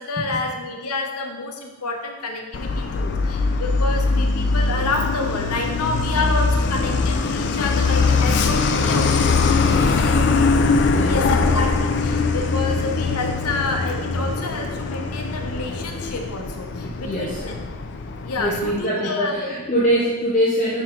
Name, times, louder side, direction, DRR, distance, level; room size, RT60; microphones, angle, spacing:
voice 1, 0.0-9.3 9.8-10.4 11.0-17.6 18.2-19.5 19.9-20.0, left 3 dB, 90° left, 3 dB, 0.8 m, -29 dB
Truck, 2.5-18.8, left 4 dB, 50° left, 0.4 m, -21 dB
voice 2, 9.7-10.0 10.9-11.2 16.8-17.4 18.4-20.8, equal, 35° left, -7 dB, 0.8 m, -23 dB
5.6 x 4.7 x 3.8 m, 1.2 s
head